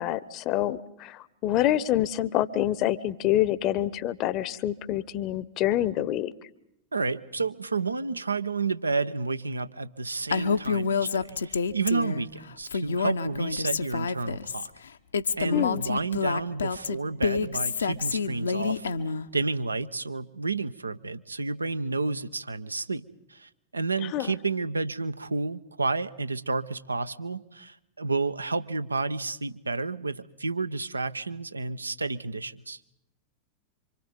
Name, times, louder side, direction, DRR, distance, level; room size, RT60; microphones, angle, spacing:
voice 1, 0.0-6.3 15.5-15.8 24.0-24.4, left 13 dB, 40° left, 19 dB, 0.9 m, -27 dB
voice 2, 6.9-14.7 15.4-18.9 19.3-32.8, right 3 dB, 80° right, 12 dB, 0.9 m, -31 dB
Female speech woman speaking, 10.3-12.3 12.7-14.7 15.1-19.3, left 5 dB, 70° left, 1.0 m, -28 dB
27.5 x 25.5 x 5.3 m, 0.85 s
figure-of-eight pair, 90°, 0 cm